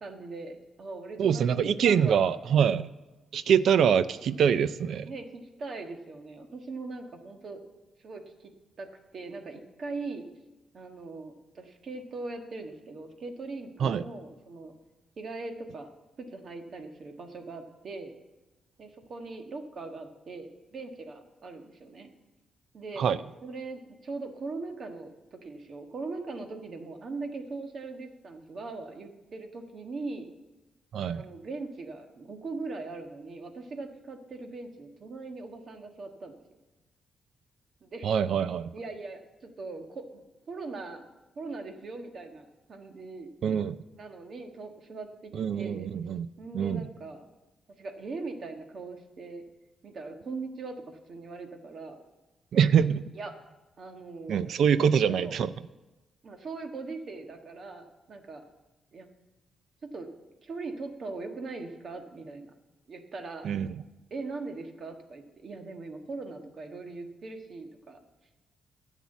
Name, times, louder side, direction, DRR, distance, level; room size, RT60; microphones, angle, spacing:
voice 1, 0.0-2.3 5.0-7.6 8.0-8.5 8.8-10.2 10.7-14.7 15.2-15.9 16.2-18.1 18.8-22.1 22.7-23.1 23.4-30.3 31.1-36.4 37.8-38.2 38.7-40.2 40.5-41.0 41.3-43.3 44.0-45.9 46.4-47.3 47.8-49.4 49.8-52.0 53.1-53.3 53.8-54.5 55.1-55.4 56.2-58.4 58.9-59.1 59.8-60.1 60.4-62.5 62.9-63.5 64.1-68.0, right 3 dB, 55° right, 5 dB, 1.4 m, -40 dB
voice 2, 1.2-2.9 3.3-5.1 13.8-14.0 23.0-23.2 30.9-31.3 38.0-38.7 43.4-43.8 45.3-46.3 46.5-46.9 52.5-53.0 54.3-55.5 63.4-63.7, right 7 dB, 75° right, 15 dB, 0.4 m, -24 dB
10.5 x 7.3 x 8.1 m, 1.1 s
cardioid pair, 90°, 0 cm